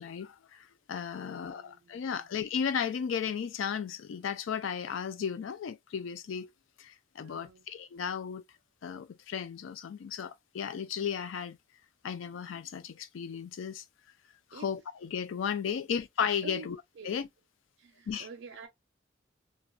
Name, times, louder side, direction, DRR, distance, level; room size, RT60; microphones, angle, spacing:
voice 1, 0.0-6.5 6.8-8.4 8.8-11.6 12.0-13.8 14.5-16.8 17.0-17.3 18.1-18.3, left 7 dB, 75° left, 0.4 m, -35 dB
voice 2, 1.2-2.3 7.2-7.7 14.5-14.7 16.4-17.1 17.8-18.7, right 5 dB, 65° right, 0.5 m, -48 dB
2.9 x 2.2 x 2.4 m
head